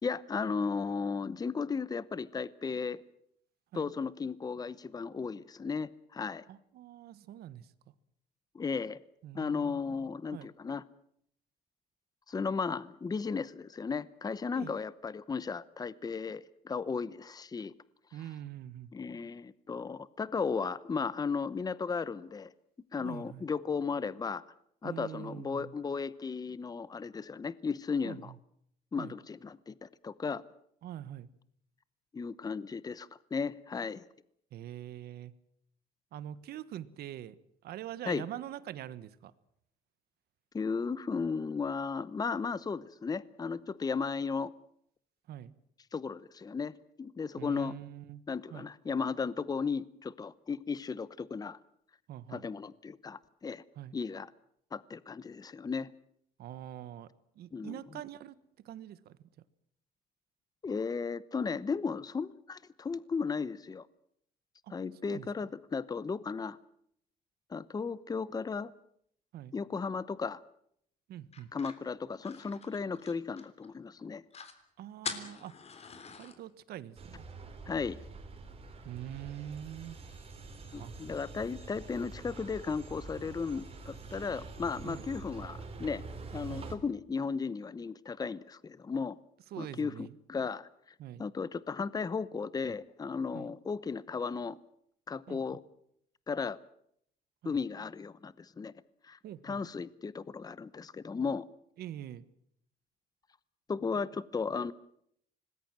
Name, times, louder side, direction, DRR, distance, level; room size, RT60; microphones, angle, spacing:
voice 1, 0.0-3.0 3.7-6.4 8.5-9.0 9.3-10.8 12.3-17.7 18.9-22.5 22.9-24.4 24.8-28.3 28.9-30.4 32.1-34.0 38.1-38.2 40.5-44.5 45.9-47.8 48.3-51.6 52.3-53.6 53.9-54.3 54.7-55.9 57.5-57.8 60.6-63.9 64.7-66.6 67.5-68.7 69.5-70.4 71.5-74.2 77.7-78.0 80.7-86.0 86.3-89.2 89.6-90.7 91.2-94.6 95.1-95.6 96.3-96.6 97.4-98.7 99.0-101.4 103.7-104.7, left 5 dB, 20° left, 18 dB, 0.9 m, -35 dB
voice 2, 6.5-7.9 9.2-10.5 14.5-14.8 18.1-18.9 23.0-23.4 24.8-25.8 28.0-28.4 29.0-29.2 30.8-31.3 34.5-35.3 36.1-37.4 37.6-39.3 45.3-45.5 47.4-48.2 48.5-48.7 52.1-52.5 53.7-54.0 56.4-57.1 57.3-59.3 64.6-64.7 65.0-65.3 69.3-69.5 71.1-71.5 74.8-75.5 76.2-77.2 78.8-80.0 80.8-80.9 84.8-85.1 86.5-86.7 89.5-90.2 91.0-91.2 93.3-93.5 95.3-95.4 97.4-97.6 99.2-99.6 101.8-102.3, right 11 dB, 70° right, 16 dB, 1.4 m, -44 dB
sound 1, 71.3-73.7 74.0-74.1 74.3-74.6 75.0-76.4, left 5 dB, 40° left, 3.4 m, -44 dB
sound 2, 77.0-86.8, right 3 dB, 35° right, 4.1 m, -46 dB
26.0 x 20.0 x 7.6 m, 0.70 s
cardioid pair, 110°, 17 cm